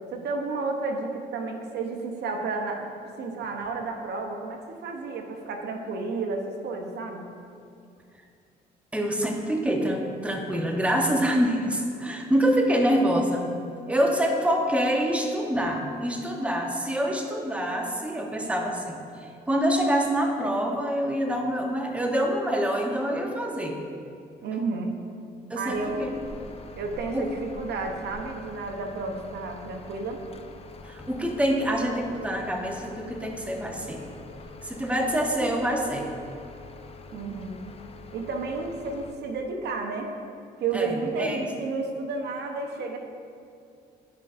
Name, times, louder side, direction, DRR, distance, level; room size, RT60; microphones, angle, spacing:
voice 1, 0.1-2.9 3.2-7.3 24.4-25.0 25.5-26.1 26.8-30.2 37.1-37.6 38.1-40.1 40.6-43.0, right 3 dB, 65° right, 3 dB, 0.8 m, -31 dB
voice 2, 8.9-13.4 13.9-23.8 25.5-26.1 27.1-27.3 30.8-34.0 34.6-36.1 40.7-41.4, equal, 5° right, 2 dB, 0.9 m, -26 dB
sound 1, 25.7-39.1, left 3 dB, 35° left, 0.6 m, -45 dB
11.0 x 5.1 x 2.5 m, 2.4 s
supercardioid pair, 75°, 18 cm